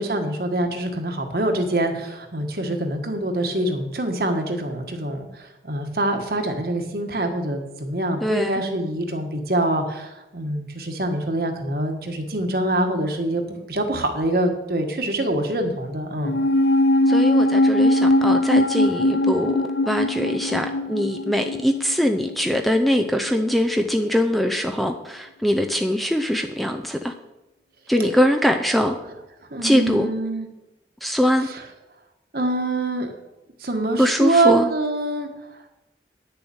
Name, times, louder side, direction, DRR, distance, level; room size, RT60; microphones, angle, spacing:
voice 1, 0.0-16.4 29.5-30.5 31.5-31.6 32.3-33.1 33.6-35.3, right 1 dB, 55° right, 4 dB, 1.5 m, -25 dB
voice 2, 8.2-8.6 17.1-27.1 27.9-28.9 29.6-30.1 31.0-31.5 34.0-34.7, equal, ahead, 5 dB, 0.5 m, -22 dB
sound 1, 16.2-22.8 23.1-23.2, left 1 dB, 75° left, 0.5 m, -20 dB
9.7 x 7.0 x 7.1 m, 0.97 s
head